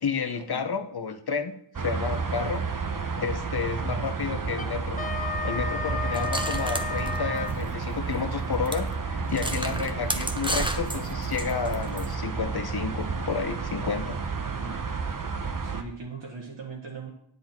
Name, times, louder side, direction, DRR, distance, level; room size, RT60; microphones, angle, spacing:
voice 1, 0.0-2.6 3.2-5.0 5.4-14.2, left 5 dB, 55° left, 9 dB, 1.0 m, -31 dB
sound 1, 1.7-15.8, right 4 dB, 45° right, 1.0 m, -31 dB
Wind instrument woodwind instrument, 4.5-7.6, left 4 dB, 20° left, 1.2 m, -33 dB
sound 2, 6.1-7.9 8.2-8.3 8.7-8.8 9.3-12.1, right 1 dB, 10° right, 0.9 m, -33 dB
voice 2, 14.4-14.9 15.6-17.1, right 4 dB, 65° right, -3 dB, 1.8 m, -40 dB
9.9 x 8.2 x 4.5 m, 0.68 s
wide cardioid pair, 80°, 47 cm